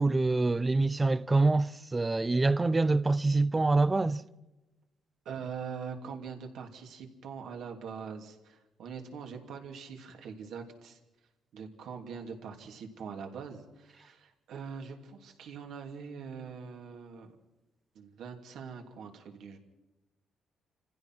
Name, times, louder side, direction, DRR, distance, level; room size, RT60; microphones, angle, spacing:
voice 1, 0.0-4.2, right 3 dB, 20° right, 0.6 m, -25 dB
voice 2, 5.2-11.0 11.5-17.4 17.9-19.6, right 6 dB, 75° right, 2.8 m, -43 dB
28.0 x 15.5 x 6.1 m
cardioid pair, 90°, 0 cm